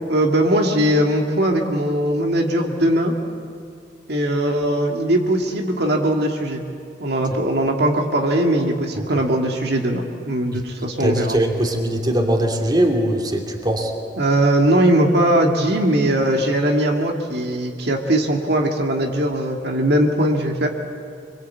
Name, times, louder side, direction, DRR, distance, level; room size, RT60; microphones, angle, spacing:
voice 1, 0.1-3.1 4.1-6.6 7.0-11.4 14.2-20.7, right 1 dB, 65° right, 2 dB, 2.1 m, -20 dB
voice 2, 11.0-13.9, right 1 dB, 25° right, 2 dB, 2.6 m, -21 dB
26.0 x 22.5 x 8.4 m, 2.3 s
head